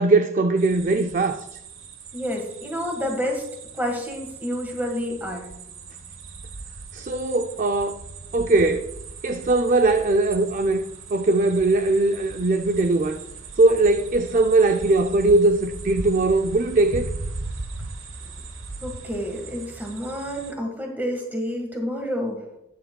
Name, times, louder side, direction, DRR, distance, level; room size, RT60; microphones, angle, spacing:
voice 1, 0.0-1.6 6.9-8.0 8.3-8.9 9.2-10.8 11.1-13.2 13.6-17.1, right 2 dB, 40° right, 0.4 m, -20 dB
sound 1, 0.6-20.5, right 3 dB, 80° right, 1.2 m, -38 dB
voice 2, 2.1-3.5 3.8-5.5 18.8-22.4, equal, 10° right, 1.5 m, -29 dB
19.0 x 6.7 x 2.3 m
head